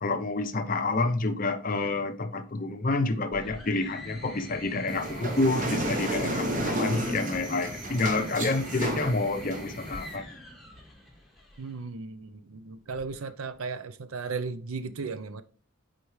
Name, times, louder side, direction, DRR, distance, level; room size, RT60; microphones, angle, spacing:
voice 1, 0.0-10.3, left 3 dB, 40° left, 0.6 m, -28 dB
sound 1, 3.3-11.7 12.9-13.6, left 1 dB, ahead, 1.4 m, -42 dB
sound 2, 4.9-10.1, right 1 dB, 35° right, 0.9 m, -32 dB
voice 2, 11.6-15.4, right 4 dB, 80° right, 0.5 m, -36 dB
8.1 x 4.2 x 3.1 m
head